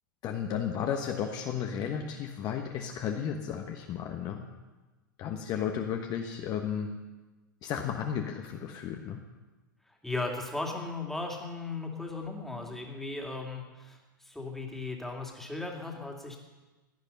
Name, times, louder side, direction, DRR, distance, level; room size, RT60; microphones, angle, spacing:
voice 1, 0.2-4.4 5.2-6.9 7.6-9.2, left 8 dB, 35° left, 3 dB, 1.3 m, -33 dB
voice 2, 10.0-14.0 14.3-16.4, left 3 dB, 5° left, 1 dB, 2.5 m, -36 dB
16.0 x 10.5 x 5.5 m, 1.2 s
hypercardioid pair, 100°, 11 cm